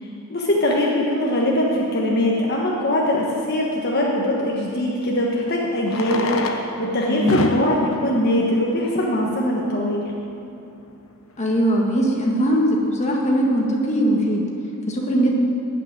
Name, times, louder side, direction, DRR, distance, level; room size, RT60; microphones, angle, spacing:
voice 1, 0.0-10.1, left 1 dB, 50° left, -3 dB, 1.3 m, -22 dB
Fireworks, 2.3-2.4 4.6-4.7 5.8-9.5 10.3-10.4 10.6-10.7 10.9-11.0 11.5-11.8, left 2 dB, 75° left, 1.0 m, -28 dB
voice 2, 7.0-7.4 11.4-14.5 14.9-15.3, equal, 30° left, -1 dB, 1.7 m, -20 dB
14.0 x 6.0 x 9.4 m, 2.9 s
head